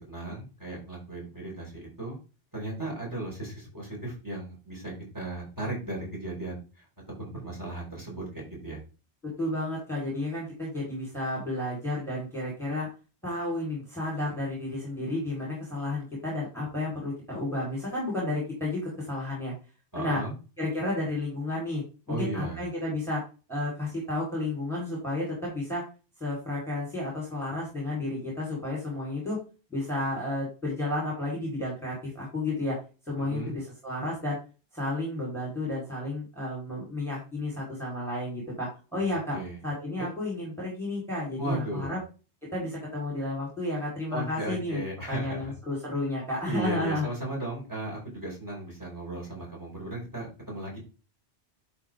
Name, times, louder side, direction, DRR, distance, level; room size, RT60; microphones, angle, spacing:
voice 1, 0.0-2.2 2.5-6.9 7.2-8.8 19.9-20.3 22.1-22.6 33.2-33.5 39.0-39.6 40.0-40.1 41.4-42.0 44.1-45.5 46.4-50.8, right 1 dB, 15° right, -3 dB, 5.0 m, -36 dB
voice 2, 9.2-12.9 13.2-19.5 19.9-20.2 20.6-23.2 23.5-25.8 26.2-29.4 29.7-32.8 33.1-34.4 34.7-39.4 39.6-42.0 42.5-44.8 45.1-47.1, left 2 dB, ahead, -4 dB, 4.1 m, -32 dB
11.0 x 4.6 x 3.7 m, 0.33 s
omnidirectional pair, 1.1 m